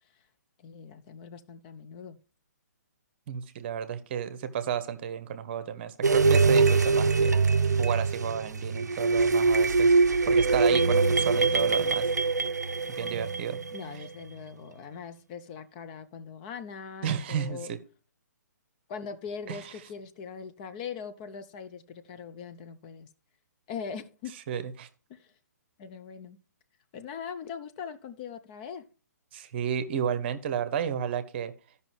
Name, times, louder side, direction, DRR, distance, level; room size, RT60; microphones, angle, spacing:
voice 1, 0.6-2.2 13.7-17.7 18.9-23.1 23.7-24.3 25.1-25.3 25.8-26.4 26.9-28.8, left 6 dB, 30° left, 0.6 m, -41 dB
voice 2, 3.3-7.4 7.7-9.9 10.3-12.1 12.9-13.6 17.0-17.8 19.5-19.7 24.5-24.9 29.3-31.5, right 8 dB, 40° right, 0.9 m, -32 dB
sound 1, 6.0-14.1, right 4 dB, 75° right, 0.5 m, -23 dB
14.0 x 5.6 x 3.2 m
figure-of-eight pair, 130°, 9 cm